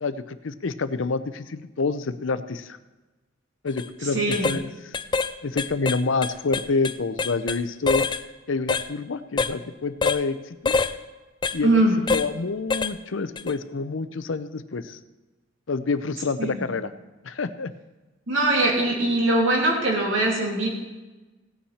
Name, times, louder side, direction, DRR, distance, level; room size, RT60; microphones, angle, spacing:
voice 1, 0.0-2.8 3.6-5.0 5.4-8.1 8.5-10.7 11.5-11.8 12.1-15.0 15.7-16.9 17.2-17.7, left 4 dB, 70° left, 12 dB, 0.6 m, -28 dB
sound 1, 3.7-3.9 4.3-4.6 4.9-5.3 5.6-7.6 7.9-8.2 8.7-8.9 9.4-9.5 10.0-10.2 10.7-10.9 11.4-11.6 12.1-12.3 12.7-12.9 13.4-13.5, left 4 dB, 25° left, 0.4 m, -25 dB
voice 2, 4.1-4.5 11.6-11.9 16.4-16.6 18.3-20.7, right 2 dB, 70° right, -2 dB, 2.9 m, -21 dB
17.0 x 8.6 x 4.3 m, 1.2 s
head